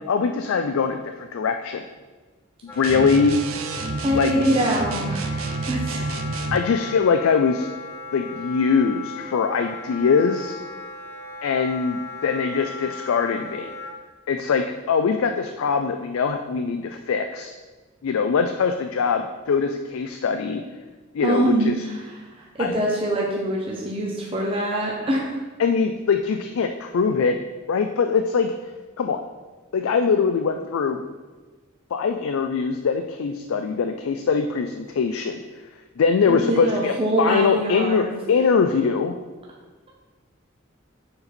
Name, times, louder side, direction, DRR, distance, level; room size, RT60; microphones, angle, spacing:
voice 1, 0.1-1.8 2.6-3.4 4.1-4.3 6.5-7.7 8.1-10.6 11.4-13.7 14.3-17.5 18.0-20.6 21.1-21.7 22.6-22.7 25.6-27.4 27.7-28.5 29.0-29.2 29.7-31.0 31.9-35.4 36.0-39.1, left 5 dB, 80° left, 6 dB, 0.4 m, -22 dB
Wind instrument woodwind instrument, 2.7-13.9, left 4 dB, 10° left, 0.5 m, -37 dB
sound 1, 2.8-6.7, right 3 dB, 80° right, 0.5 m, -29 dB
voice 2, 4.0-6.1 21.2-25.3 36.2-38.2, right 1 dB, 25° right, -3 dB, 0.8 m, -24 dB
6.7 x 4.2 x 4.2 m, 1.3 s
head